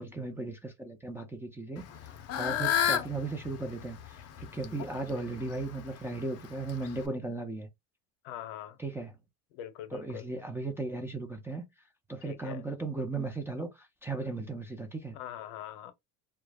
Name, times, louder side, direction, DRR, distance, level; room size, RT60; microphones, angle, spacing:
voice 1, 0.0-7.7 8.8-9.1 9.9-11.6 12.1-15.2, right 3 dB, 5° right, 0.5 m, -36 dB
Fowl / Bird, 1.8-7.1, left 9 dB, 45° left, 0.6 m, -33 dB
voice 2, 8.2-8.8 9.5-10.3 12.2-12.6 15.1-15.9, left 11 dB, 80° left, 0.7 m, -42 dB
2.2 x 2.0 x 3.3 m
supercardioid pair, 95°, 35 cm